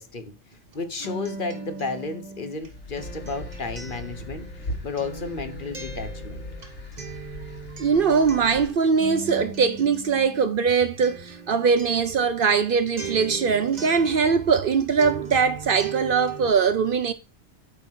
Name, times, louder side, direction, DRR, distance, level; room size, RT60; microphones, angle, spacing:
voice 1, 0.0-6.4, left 4 dB, 50° left, 1.2 m, -33 dB
Acoustic guitar, 0.5-14.7 15.0-16.5, right 4 dB, 40° right, 1.5 m, -39 dB
sound 1, 2.6-8.7, equal, 80° left, 2.3 m, -38 dB
voice 2, 7.8-17.1, right 5 dB, 55° right, 0.8 m, -21 dB
8.2 x 4.4 x 5.8 m
omnidirectional pair, 1.2 m